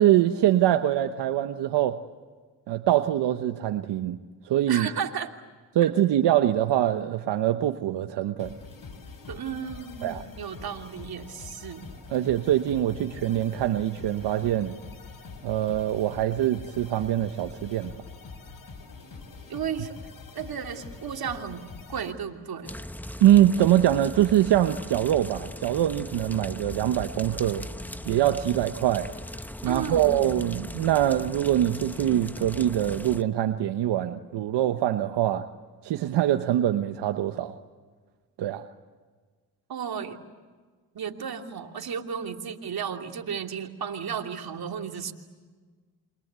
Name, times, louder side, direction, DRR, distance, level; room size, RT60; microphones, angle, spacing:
voice 1, 0.0-2.0 2.7-4.2 4.4-4.9 5.7-8.5 10.0-10.2 12.1-14.7 15.4-17.9 23.2-27.7 28.0-29.1 29.6-35.5 35.8-37.6 38.4-38.7, right 12 dB, 85° right, 7 dB, 1.2 m, -23 dB
voice 2, 4.7-5.4 9.3-11.8 19.5-19.9 20.3-21.6 21.9-22.7 29.6-30.3 39.7-40.2 40.9-45.1, right 7 dB, 60° right, 3 dB, 3.0 m, -34 dB
sound 1, 8.4-22.1, left 4 dB, 55° left, 7.1 m, -44 dB
sound 2, 22.6-33.2, left 1 dB, 5° left, 1.2 m, -39 dB
28.0 x 26.0 x 8.2 m, 1.5 s
cardioid pair, 70°, 41 cm